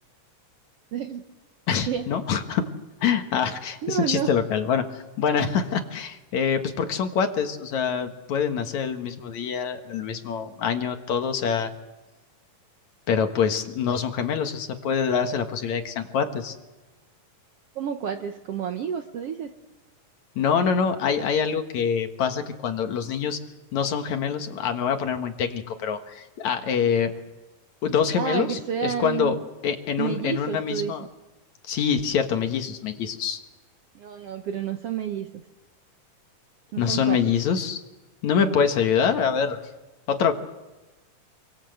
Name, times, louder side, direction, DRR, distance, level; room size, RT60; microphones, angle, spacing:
voice 1, 0.9-1.2 1.8-2.0 3.8-4.3 17.7-19.5 28.2-29.4 30.0-30.9 33.9-35.3 36.7-37.3 38.4-38.6, right 8 dB, 65° right, 6 dB, 1.5 m, -30 dB
voice 2, 1.7-2.7 3.0-11.7 13.1-16.6 20.4-23.4 23.7-27.1 27.8-29.4 29.6-31.0 31.7-33.4 36.8-37.8 38.2-39.6 40.1-40.3, left 7 dB, 65° left, 6 dB, 2.7 m, -25 dB
30.0 x 24.0 x 7.9 m, 1.1 s
omnidirectional pair, 3.8 m